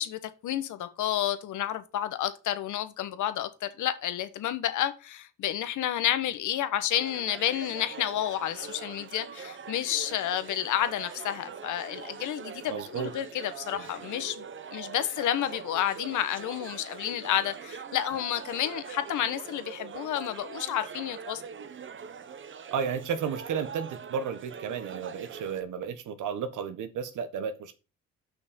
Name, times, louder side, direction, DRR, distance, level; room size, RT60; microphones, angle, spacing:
voice 1, 0.0-14.4 14.7-21.4, left 11 dB, 80° left, 1.3 m, -30 dB
sound 1, 6.9-25.6, right 7 dB, 40° right, 0.9 m, -43 dB
voice 2, 12.7-13.1 13.7-13.9 22.7-27.7, right 7 dB, 85° right, 1.5 m, -33 dB
6.1 x 6.1 x 6.9 m
cardioid pair, 90°, 30 cm